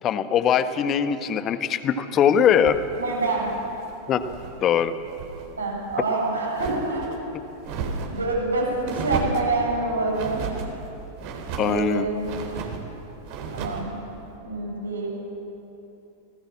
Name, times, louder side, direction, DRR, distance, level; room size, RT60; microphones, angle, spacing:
voice 1, 0.0-2.8 4.1-4.2 4.6-4.9 11.6-12.1, left 8 dB, 30° left, 10 dB, 1.4 m, -21 dB
sound 1, 2.5-4.6 4.9-5.5 5.8-7.2 7.6-8.3 8.8-9.5 10.1-10.7 11.2-11.8 12.2-12.8 13.2-13.9, right 5 dB, 45° right, 3.8 m, -34 dB
voice 2, 3.0-3.5 5.6-7.2 8.1-10.4 11.6-12.2 13.4-14.0 14.4-15.1, right 2 dB, 75° right, -2 dB, 7.9 m, -26 dB
28.0 x 19.0 x 7.5 m, 3.0 s
figure-of-eight pair, 90°, 0 cm